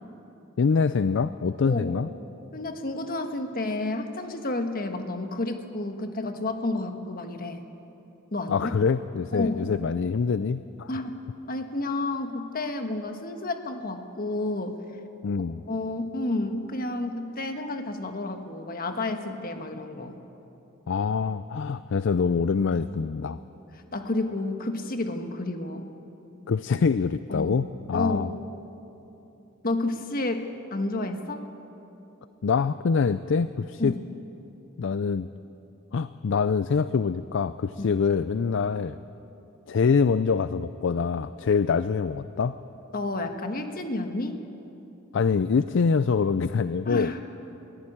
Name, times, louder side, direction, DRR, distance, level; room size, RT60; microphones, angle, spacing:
voice 1, 0.6-2.1 8.5-10.9 15.2-15.6 20.9-23.4 26.5-28.3 32.4-33.9 34.8-35.3 35.9-39.0 39.7-42.6 45.1-47.1, left 5 dB, 60° left, 14 dB, 0.4 m, -25 dB
voice 2, 1.6-1.9 2.5-7.6 8.3-8.7 9.3-9.7 10.9-11.1 11.5-14.8 15.7-20.1 23.9-25.9 27.3-27.6 27.9-28.3 29.6-31.4 33.8-34.1 37.8-37.9 42.9-44.4 46.8-47.2, left 2 dB, 45° left, 6 dB, 1.5 m, -30 dB
22.0 x 15.0 x 8.7 m, 3.0 s
head